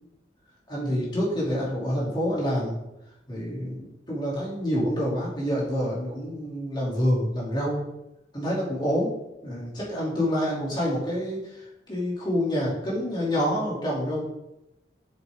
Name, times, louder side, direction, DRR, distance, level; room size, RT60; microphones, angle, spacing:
voice 1, 0.7-2.8 3.3-7.8 8.3-9.1 9.4-14.2, equal, 25° left, -6 dB, 2.8 m, -27 dB
7.6 x 7.3 x 3.7 m, 0.90 s
head